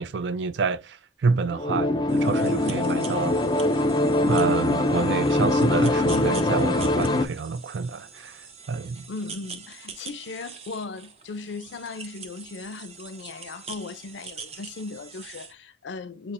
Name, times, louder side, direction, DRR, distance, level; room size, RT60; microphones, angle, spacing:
voice 1, 0.0-3.4 4.3-9.1, right 4 dB, 75° right, 0.4 m, -28 dB
sound 1, 1.5-7.3, left 2 dB, 25° left, 0.3 m, -23 dB
sound 2, 2.1-15.5, right 5 dB, 35° right, 0.7 m, -43 dB
voice 2, 9.1-16.3, left 4 dB, 85° left, 0.5 m, -37 dB
5.7 x 2.0 x 2.5 m
head